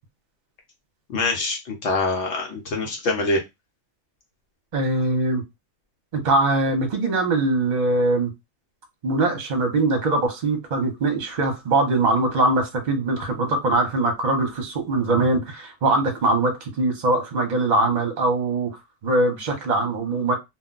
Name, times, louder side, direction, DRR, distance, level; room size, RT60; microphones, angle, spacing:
voice 1, 1.1-3.4, left 2 dB, 70° left, 1.0 m, -24 dB
voice 2, 4.7-5.4 6.1-8.3 9.0-18.7 19.0-20.3, right 2 dB, 40° right, 0.8 m, -22 dB
2.3 x 2.2 x 3.8 m
omnidirectional pair, 1.3 m